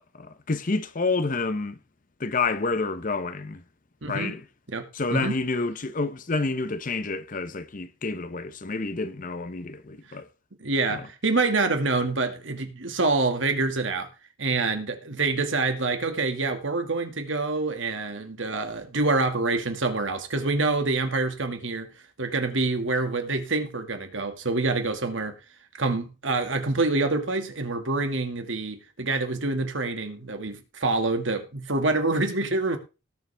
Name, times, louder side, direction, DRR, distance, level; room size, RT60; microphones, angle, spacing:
voice 1, 0.1-1.8 2.2-3.6 4.1-4.4 4.9-10.3 10.9-11.1, left 3 dB, 40° left, 0.8 m, -29 dB
voice 2, 4.0-4.3 4.7-5.4 10.6-14.1 14.4-21.9 22.2-25.4 25.8-32.8, right 3 dB, 70° right, 2.0 m, -26 dB
18.5 x 7.1 x 3.4 m
head